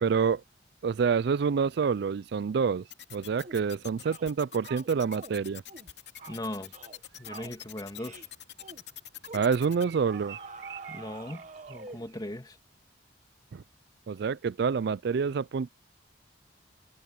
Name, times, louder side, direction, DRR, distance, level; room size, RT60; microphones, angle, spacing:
voice 1, 0.0-0.4 0.8-5.6 9.3-10.4 13.5-13.6 14.1-15.7, right 6 dB, 60° right, 0.4 m, -27 dB
sound 1, 2.9-9.8, left 11 dB, 65° left, 2.9 m, -44 dB
sound 2, 3.4-3.7 4.0-4.3 4.6-5.4 5.7-5.9 6.2-6.4 6.7-7.0 7.3-7.5 8.0-8.3 8.6-8.8 9.2-9.5 10.1-12.1, right 4 dB, 40° right, 1.5 m, -46 dB
sound 3, 6.2-12.3, right 10 dB, 75° right, 7.7 m, -53 dB
voice 2, 6.3-6.7 7.2-8.2 10.9-11.4 11.7-12.6, left 1 dB, 20° left, 2.8 m, -38 dB
head